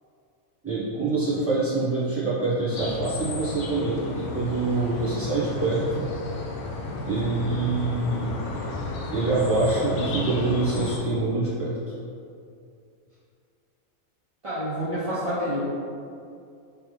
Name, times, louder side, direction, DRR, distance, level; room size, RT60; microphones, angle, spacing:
voice 1, 0.6-6.0 7.0-8.3 9.1-11.8, right 3 dB, 10° right, -11 dB, 1.1 m, -25 dB
sound 1, 2.7-11.0, left 2 dB, 85° left, 1.0 m, -33 dB
voice 2, 14.4-15.6, equal, 40° right, -11 dB, 0.5 m, -28 dB
3.4 x 3.3 x 3.3 m, 2.5 s
omnidirectional pair, 1.4 m